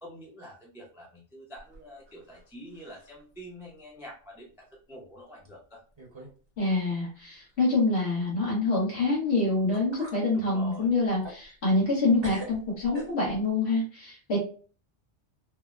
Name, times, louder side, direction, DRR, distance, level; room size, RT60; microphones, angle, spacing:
voice 1, 0.0-5.8 10.3-10.9, equal, 5° right, -3 dB, 0.5 m, -46 dB
sound 1, 1.6-2.5 2.7-3.2 3.7-3.8 4.6-4.7 5.5-5.6 6.0-6.4 6.6-6.8 9.3-9.4 9.7-10.2 10.7-12.0 12.2-13.5, right 1 dB, 30° right, 0.8 m, -44 dB
voice 2, 6.6-14.4, left 2 dB, 75° left, -5 dB, 1.3 m, -26 dB
3.3 x 2.1 x 2.4 m, 0.40 s
omnidirectional pair, 1.1 m